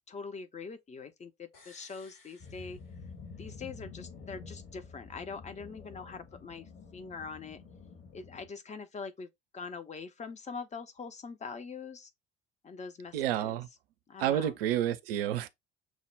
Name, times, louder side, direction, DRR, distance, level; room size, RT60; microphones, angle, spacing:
voice 1, 0.1-2.8 3.4-6.6 6.9-7.6 8.1-12.1 12.6-13.6 14.1-14.6, left 5 dB, 25° left, 0.6 m, -43 dB
sound 1, 1.5-3.5 3.8-3.9, left 3 dB, 70° left, 3.2 m, -60 dB
sound 2, 2.4-8.5, left 5 dB, 45° left, 1.4 m, -49 dB
voice 2, 13.1-13.7 14.2-15.5, right 11 dB, 70° right, 0.5 m, -30 dB
6.1 x 2.1 x 3.3 m
figure-of-eight pair, 55°, 30 cm